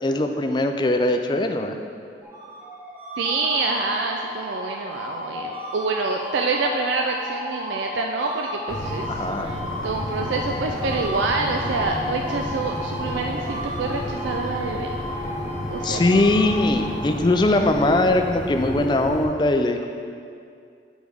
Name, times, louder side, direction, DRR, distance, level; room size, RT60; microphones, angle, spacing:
voice 1, 0.0-1.8 9.1-9.5 15.8-19.9, left 2 dB, 25° left, 5 dB, 0.3 m, -21 dB
sound 1, 2.2-17.5, left 1 dB, 10° right, 0.8 m, -33 dB
voice 2, 3.2-14.9 15.7-16.2, right 3 dB, 85° right, 2 dB, 0.4 m, -27 dB
sound 2, 8.7-19.3, left 1 dB, 40° left, 1.0 m, -32 dB
8.3 x 6.1 x 3.5 m, 2.3 s
head